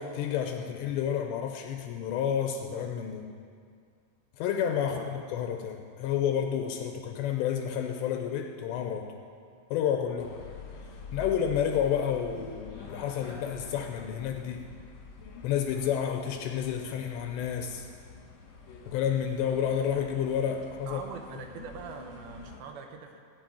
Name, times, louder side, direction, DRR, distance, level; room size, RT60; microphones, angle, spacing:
voice 1, 0.0-3.3 4.4-9.1 9.7-10.4 11.1-14.7 15.4-17.9 18.9-21.0, left 8 dB, 80° left, 4 dB, 2.7 m, -30 dB
sound 1, 10.2-22.6, left 4 dB, 60° left, 2.0 m, -47 dB
voice 2, 20.9-23.2, right 6 dB, 80° right, 4 dB, 2.2 m, -43 dB
16.5 x 5.5 x 9.0 m, 2.2 s
omnidirectional pair, 5.4 m